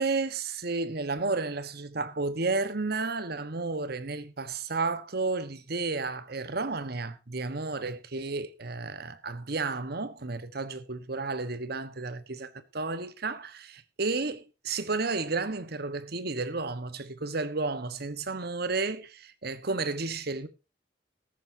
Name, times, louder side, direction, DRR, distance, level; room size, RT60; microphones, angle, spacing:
voice 1, 0.0-20.5, right 3 dB, 60° right, 1.3 m, -32 dB
14.0 x 14.0 x 2.8 m
head